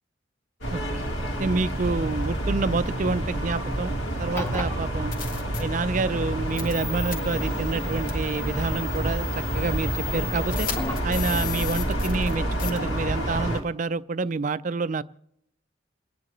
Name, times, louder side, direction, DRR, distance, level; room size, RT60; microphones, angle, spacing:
sound 1, 0.6-13.6, right 1 dB, 65° left, 2.4 m, -28 dB
voice 1, 0.7-1.0 1.4-5.1 5.6-10.7 11.0-15.0, right 3 dB, 40° right, 15 dB, 0.4 m, -28 dB
sound 2, 4.2-11.1, left 3 dB, 10° left, 1.1 m, -38 dB
sound 3, 4.5-4.6 5.1-5.6 6.6-6.8 7.1-7.2 8.1-8.2 9.0-9.1 10.5-12.3 12.6-12.8, left 7 dB, 45° left, 1.5 m, -33 dB
29.0 x 9.9 x 3.1 m, 0.79 s
head